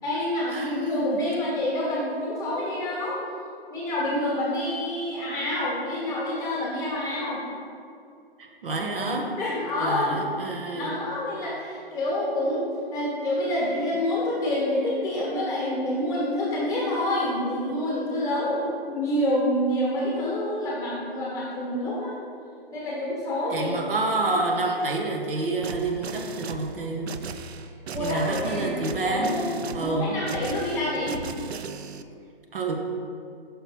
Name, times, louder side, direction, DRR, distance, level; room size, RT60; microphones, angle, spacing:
voice 1, 0.0-3.2 3.7-7.4 9.1-10.2 10.7-12.6 12.9-22.1 22.7-23.7 24.3-24.4 27.9-28.8 29.1-29.5 29.8-31.2, left 1 dB, 10° left, -5 dB, 1.4 m, -27 dB
voice 2, 8.4-9.4 9.8-11.0 23.5-27.1 28.0-30.2 32.5-32.7, right 2 dB, 60° right, 1 dB, 1.0 m, -28 dB
sound 1, 25.6-32.0, right 5 dB, 90° right, 0.5 m, -37 dB
6.0 x 4.0 x 5.6 m, 2.4 s
hypercardioid pair, 145°, 31 cm